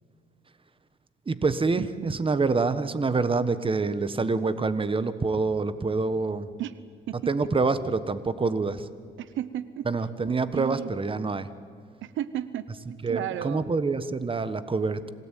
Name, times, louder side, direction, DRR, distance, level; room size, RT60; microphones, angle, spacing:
voice 1, 1.3-6.5 7.3-8.9 9.8-11.5 13.0-15.1, right 4 dB, 25° right, 13 dB, 1.4 m, -26 dB
voice 2, 1.8-2.2 6.6-6.7 7.1-7.2 9.2-9.9 10.5-10.9 12.0-12.7 13.1-13.6, right 12 dB, 75° right, 15 dB, 0.9 m, -33 dB
26.5 x 18.0 x 9.2 m, 2.3 s
cardioid pair, 90°, 20 cm